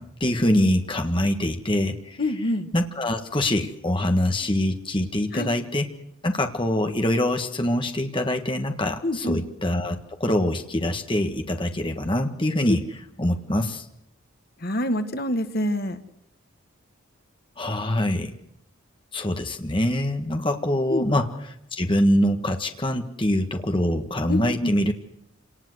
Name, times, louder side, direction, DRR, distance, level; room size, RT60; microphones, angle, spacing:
voice 1, 0.0-2.2 2.7-5.9 6.2-13.8 17.6-18.3 19.1-24.9, left 1 dB, 25° left, 5 dB, 1.6 m, -24 dB
voice 2, 2.2-2.7 5.3-5.5 9.0-9.4 14.6-16.0 20.9-21.1 24.3-24.7, left 1 dB, 45° left, 9 dB, 1.6 m, -26 dB
27.5 x 19.0 x 8.0 m, 0.77 s
head